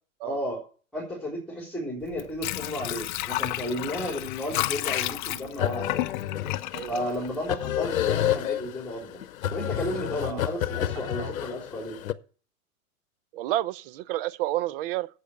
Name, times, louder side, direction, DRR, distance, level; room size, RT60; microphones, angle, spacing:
voice 1, 0.2-0.6 0.9-6.0 6.9-9.2 9.5-12.0, left 1 dB, ahead, 3.8 m, -33 dB
Water / Sink (filling or washing), 2.0-7.9 8.3-8.4, left 17 dB, 35° left, 0.5 m, -32 dB
sound 1, 5.6-12.1, left 11 dB, 70° left, 0.9 m, -30 dB
voice 2, 6.7-7.2 10.2-10.4 11.0-11.3 13.3-15.1, right 15 dB, 40° right, 0.6 m, -31 dB
8.3 x 7.9 x 7.8 m
hypercardioid pair, 125°, 42 cm